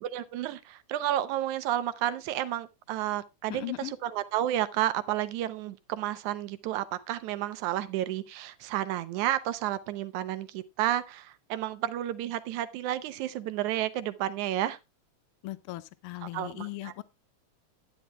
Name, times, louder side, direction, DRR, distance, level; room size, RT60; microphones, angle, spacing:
voice 1, 0.0-14.8 16.3-16.9, right 13 dB, 85° right, 2.2 m, -31 dB
voice 2, 3.5-3.9 15.4-17.0, left 17 dB, 85° left, 1.2 m, -38 dB
10.5 x 10.0 x 3.2 m
omnidirectional pair, 3.3 m